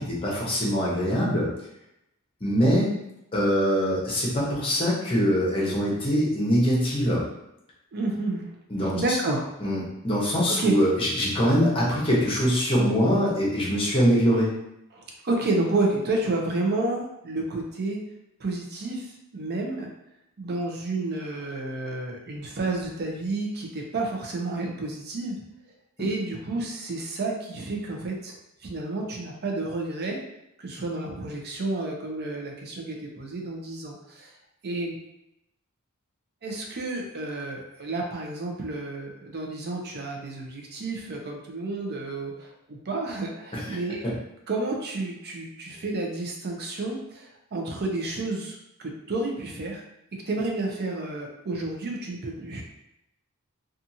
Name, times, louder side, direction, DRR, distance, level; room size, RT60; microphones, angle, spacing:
voice 1, 0.0-1.5 2.4-2.9 3.3-7.2 8.7-9.2 9.6-14.5 43.5-43.6, equal, 25° left, -5 dB, 0.8 m, -23 dB
voice 2, 7.9-8.5 8.9-9.5 10.5-10.8 14.9-18.0 18.4-19.9 20.4-25.4 26.0-28.3 28.6-30.2 30.6-34.3 34.6-35.0 36.4-44.1 44.5-49.8 50.1-52.6, right 2 dB, 45° right, 1 dB, 0.5 m, -30 dB
2.6 x 2.4 x 2.7 m, 0.82 s
head